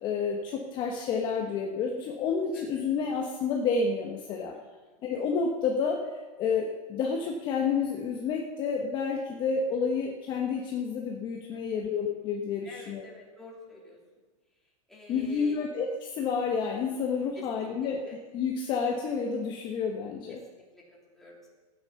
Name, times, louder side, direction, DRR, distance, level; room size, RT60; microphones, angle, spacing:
voice 1, 0.0-4.5 5.0-13.0 15.1-20.4, left 5 dB, 25° left, 1 dB, 1.1 m, -30 dB
voice 2, 11.5-11.9 12.6-14.0 14.9-15.6 17.4-18.2 20.3-21.5, equal, ahead, -5 dB, 2.9 m, -49 dB
14.0 x 9.4 x 7.0 m, 1.3 s
supercardioid pair, 165°, 18 cm